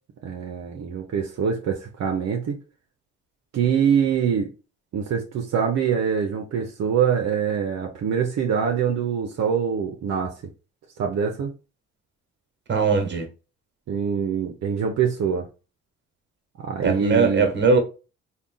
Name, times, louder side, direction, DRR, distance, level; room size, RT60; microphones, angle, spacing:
voice 1, 0.2-2.6 3.5-4.5 4.9-10.3 11.0-11.5 13.9-15.5 16.6-17.5, right 7 dB, 60° right, 0.7 m, -24 dB
voice 2, 12.7-13.3 16.8-17.8, right 4 dB, 35° right, 1.2 m, -20 dB
3.6 x 2.3 x 3.7 m
cardioid pair, 90°, 30 cm